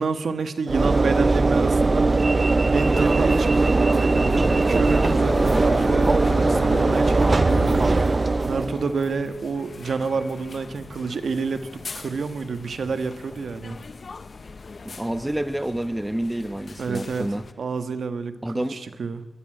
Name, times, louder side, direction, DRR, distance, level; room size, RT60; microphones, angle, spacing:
voice 1, 0.0-2.1 2.7-7.6 8.4-13.8 16.8-19.3, right 4 dB, 70° right, 10 dB, 1.5 m, -29 dB
Train / Engine / Alarm, 0.7-8.9, right 3 dB, 35° right, 0.6 m, -20 dB
sound 1, 2.7-17.5, left 4 dB, 45° left, 1.0 m, -42 dB
Bowed string instrument, 4.0-8.9, left 5 dB, 80° left, 1.9 m, -34 dB
voice 2, 14.8-17.4 18.4-18.8, right 1 dB, 10° right, 11 dB, 1.1 m, -28 dB
22.5 x 16.0 x 8.9 m, 1.1 s
wide cardioid pair, 110°, 0 cm